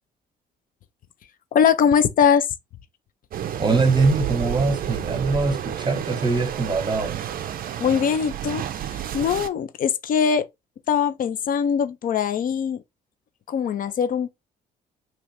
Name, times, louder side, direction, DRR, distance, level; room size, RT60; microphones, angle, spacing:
voice 1, 1.5-2.5 7.8-8.6 8.9-10.4 10.9-12.8 13.5-14.3, left 7 dB, 40° left, 0.4 m, -21 dB
sound 1, 3.3-9.5, right 10 dB, 45° right, 0.4 m, -30 dB
voice 2, 3.6-7.3, right 3 dB, 20° right, 1.0 m, -22 dB
2.8 x 2.4 x 3.1 m
hypercardioid pair, 50°, 21 cm